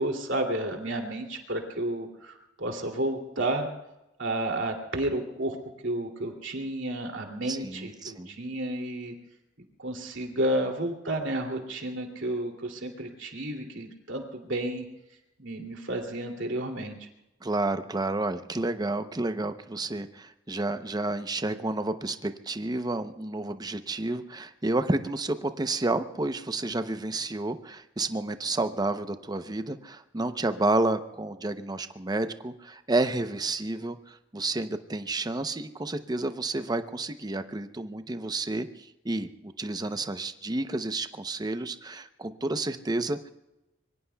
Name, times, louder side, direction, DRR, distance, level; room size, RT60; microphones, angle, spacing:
voice 1, 0.0-3.7 4.2-5.6 5.8-9.1 9.8-14.9 15.4-17.1, right 1 dB, 75° right, 2 dB, 2.7 m, -31 dB
voice 2, 7.5-8.4 17.4-43.3, right 2 dB, 20° right, 9 dB, 0.7 m, -30 dB
25.5 x 23.0 x 2.3 m, 0.93 s
head